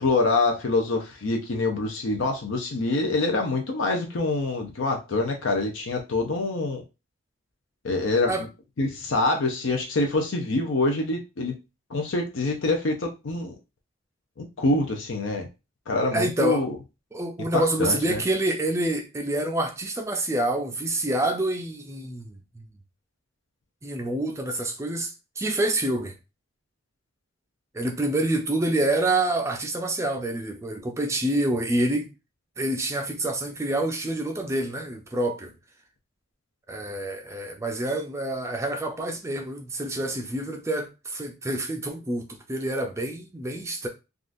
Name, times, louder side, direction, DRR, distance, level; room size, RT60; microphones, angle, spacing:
voice 1, 0.0-6.8 7.8-8.3 8.8-11.5 11.9-13.5 14.4-15.5 15.9-16.7 17.5-18.2, left 2 dB, 75° left, 0.6 m, -25 dB
voice 2, 16.1-16.6 17.1-22.4 23.8-26.2 27.7-32.1 32.6-35.5 36.7-43.9, right 1 dB, 15° right, 0.4 m, -27 dB
3.6 x 2.4 x 2.5 m
head